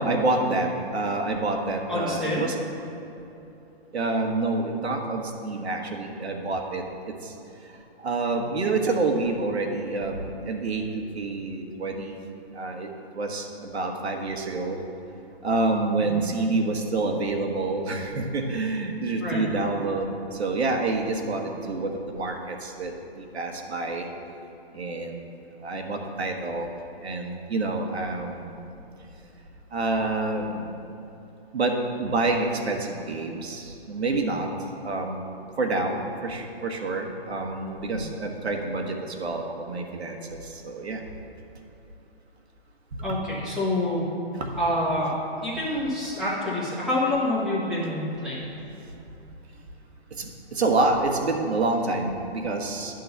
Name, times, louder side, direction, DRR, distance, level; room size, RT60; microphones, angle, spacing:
voice 1, 0.0-2.6 3.9-6.8 7.2-7.3 8.0-10.8 11.1-12.1 12.5-12.9 13.1-14.8 15.4-24.1 24.7-25.2 25.6-26.7 27.0-28.6 29.7-30.7 31.5-34.5 34.8-35.2 35.6-41.0 43.1-43.2 44.3-44.6 50.2-52.9, right 3 dB, 85° right, 3 dB, 1.3 m, -27 dB
voice 2, 1.9-2.5 16.0-16.3 19.2-19.4 37.9-38.1 43.0-44.0 44.6-45.2 45.4-48.6, left 1 dB, ahead, -9 dB, 0.9 m, -27 dB
10.5 x 3.9 x 6.8 m, 2.9 s
hypercardioid pair, 160°, 32 cm